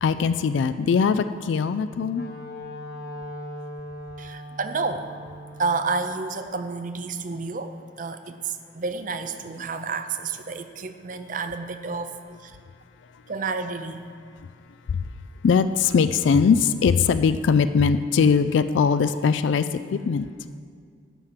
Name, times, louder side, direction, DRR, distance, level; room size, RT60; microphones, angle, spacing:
voice 1, 0.0-2.3 14.9-15.0 15.4-20.3, left 6 dB, 75° left, 12 dB, 0.3 m, -21 dB
Wind instrument woodwind instrument, 1.7-5.8, left 1 dB, 50° left, 1.0 m, -39 dB
voice 2, 4.2-5.1 5.6-12.1 12.4-12.6 13.3-14.0, right 4 dB, 45° right, 9 dB, 0.6 m, -30 dB
11.5 x 5.9 x 7.3 m, 2.1 s
head